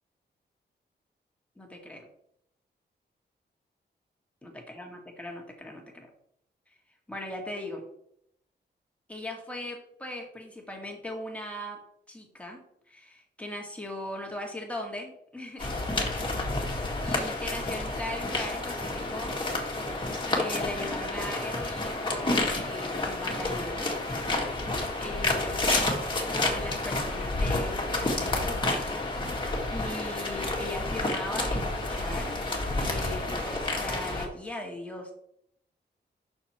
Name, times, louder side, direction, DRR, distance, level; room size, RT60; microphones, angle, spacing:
voice 1, 1.6-2.1 4.4-6.1 7.1-7.8 9.1-11.8 12.1-15.8 16.5-19.4 20.3-23.9 25.0-25.6 26.3-28.9 29.2-35.1, left 1 dB, 5° left, 1 dB, 1.9 m, -39 dB
sound 1, 15.6-34.3, left 2 dB, 25° left, 1.9 m, -30 dB
6.4 x 6.1 x 4.4 m, 0.73 s
wide cardioid pair, 120°, 18 cm